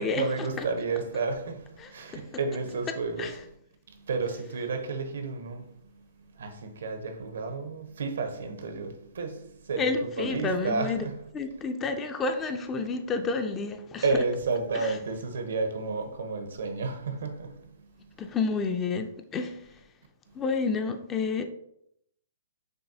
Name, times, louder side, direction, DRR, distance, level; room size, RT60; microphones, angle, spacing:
voice 1, 0.0-3.6 3.9-11.2 14.0-18.1 20.3-20.4, right 4 dB, 75° right, 0.7 m, -32 dB
voice 2, 1.8-2.2 3.2-3.3 9.8-11.1 11.3-14.0 18.2-19.6 20.3-21.5, left 4 dB, 20° left, 0.4 m, -30 dB
6.2 x 2.3 x 2.7 m
hypercardioid pair, 130°, 0 cm